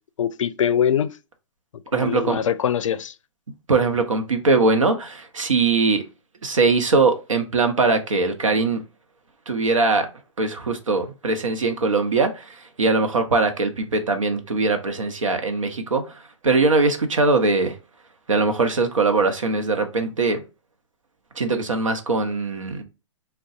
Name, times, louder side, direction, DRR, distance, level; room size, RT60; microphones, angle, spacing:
voice 1, 0.2-1.1 1.9-3.1, left 9 dB, 80° left, 0.4 m, -22 dB
voice 2, 1.9-2.4 3.7-6.0 6.4-8.8 9.5-10.1 10.4-17.8 18.3-20.4 21.4-22.8, right 3 dB, 90° right, 0.8 m, -21 dB
3.8 x 2.2 x 2.4 m
hypercardioid pair, 130°, 16 cm